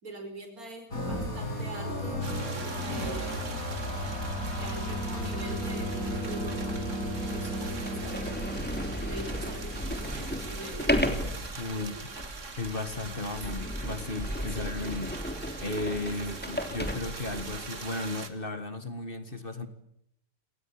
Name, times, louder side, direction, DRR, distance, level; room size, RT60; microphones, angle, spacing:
voice 1, 0.0-3.5 4.6-6.8 7.3-8.7 9.0-11.0 11.7-12.2 12.9-13.5 14.5-14.7 16.1-16.5, right 2 dB, 75° right, 7 dB, 5.6 m, -44 dB
sound 1, 0.9-11.5, equal, 70° left, 7.3 m, -34 dB
sound 2, 2.2-18.3, right 4 dB, 55° right, 2.4 m, -43 dB
Sliding door, 6.4-6.5 7.2-7.3 7.7-17.7, equal, 5° left, 3.2 m, -34 dB
voice 2, 11.6-12.0 12.6-15.2 15.6-19.7, left 2 dB, 35° left, 10 dB, 1.9 m, -35 dB
28.0 x 19.0 x 8.7 m, 0.78 s
omnidirectional pair, 1.6 m